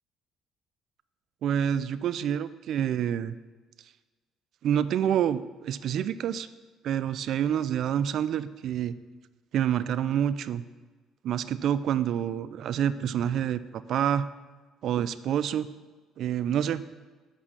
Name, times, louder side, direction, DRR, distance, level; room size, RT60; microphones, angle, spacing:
voice 1, 1.4-3.3 4.6-6.5 6.8-8.9 9.5-10.6 11.2-14.3 14.8-15.7 16.2-16.8, right 9 dB, 55° right, 13 dB, 0.4 m, -27 dB
8.3 x 5.9 x 7.4 m, 1.4 s
cardioid pair, 130°, 0 cm